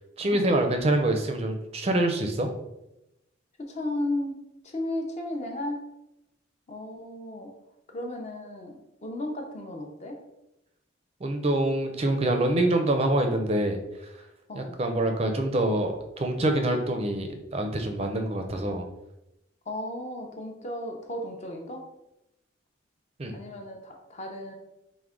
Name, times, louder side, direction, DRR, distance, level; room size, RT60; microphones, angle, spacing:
voice 1, 0.2-2.5 11.2-13.8 14.5-18.8 23.2-23.3, right 1 dB, 30° right, 5 dB, 0.4 m, -25 dB
voice 2, 3.6-4.4 4.6-5.8 6.7-7.5 7.9-10.2 14.5-14.8 19.7-21.8 23.3-24.5, left 1 dB, 35° left, 2 dB, 0.5 m, -34 dB
4.6 x 2.1 x 3.6 m, 0.90 s
head